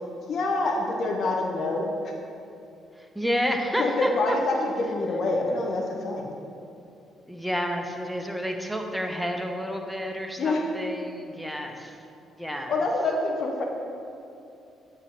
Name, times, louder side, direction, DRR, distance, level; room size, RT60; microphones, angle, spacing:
voice 1, 0.3-2.1 3.8-6.3 10.4-10.6 12.7-13.6, left 2 dB, 55° left, 0 dB, 0.6 m, -26 dB
voice 2, 2.9-4.4 5.9-6.2 7.3-12.0 12.4-12.7, equal, ahead, 3 dB, 0.8 m, -30 dB
7.2 x 3.3 x 5.7 m, 2.7 s
figure-of-eight pair, 40°, 0 cm